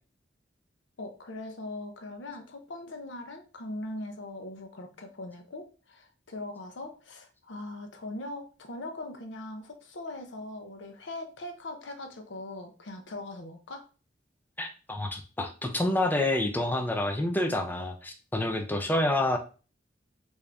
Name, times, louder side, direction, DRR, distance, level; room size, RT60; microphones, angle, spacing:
voice 1, 1.0-13.8, left 2 dB, 90° left, 6 dB, 0.7 m, -40 dB
voice 2, 14.6-19.4, left 1 dB, 10° left, 5 dB, 0.4 m, -28 dB
3.5 x 2.6 x 3.3 m, 0.35 s
head